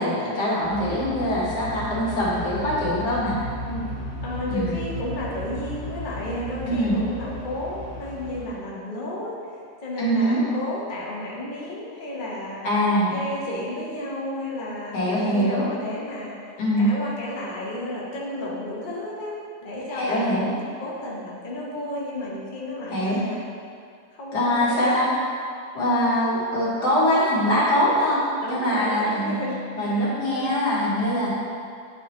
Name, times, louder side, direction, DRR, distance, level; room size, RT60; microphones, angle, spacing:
voice 1, 0.0-3.4 4.5-4.7 6.7-7.0 10.0-10.4 12.6-13.1 14.9-15.7 16.6-16.9 19.9-20.5 22.9-23.2 24.3-25.1 25.7-28.2 28.5-29.4 29.8-31.3, equal, 90° left, -7 dB, 2.1 m, -23 dB
sound 1, 0.6-8.5, left 1 dB, 55° left, 1.8 m, -35 dB
voice 2, 4.2-12.7 13.1-20.5 20.8-23.4 24.1-25.0 25.9-26.0 28.4-30.1 30.3-30.4, left 1 dB, 35° left, -5 dB, 1.1 m, -32 dB
9.0 x 4.5 x 3.1 m, 2.2 s
omnidirectional pair, 1.7 m